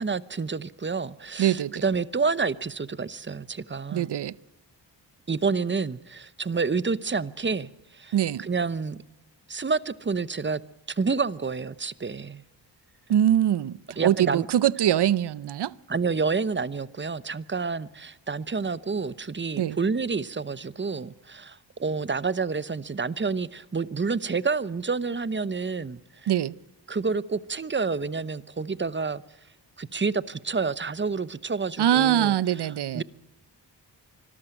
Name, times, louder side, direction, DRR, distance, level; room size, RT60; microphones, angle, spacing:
voice 1, 0.0-4.1 5.3-8.1 8.4-9.0 9.5-10.6 10.9-12.4 14.0-14.5 15.9-26.0 26.9-29.2 29.8-32.3 32.9-33.0, right 4 dB, 25° right, 0.8 m, -29 dB
voice 2, 1.4-1.8 3.9-4.3 8.1-8.4 13.1-15.7 19.6-19.8 26.3-26.6 31.8-33.0, right 11 dB, 65° right, 0.7 m, -23 dB
25.0 x 13.5 x 9.1 m
cardioid pair, 70°, 44 cm